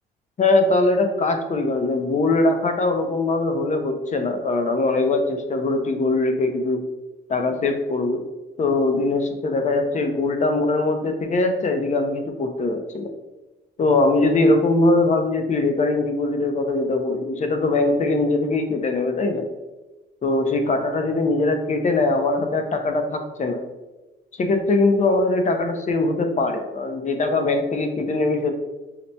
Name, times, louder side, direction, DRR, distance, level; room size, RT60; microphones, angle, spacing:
voice 1, 0.4-6.9 7.3-8.2 8.6-13.1 13.8-19.5 20.2-23.6 24.4-28.5, left 2 dB, 35° left, 6 dB, 0.5 m, -21 dB
5.7 x 2.1 x 2.7 m, 1.1 s
cardioid pair, 90°, 20 cm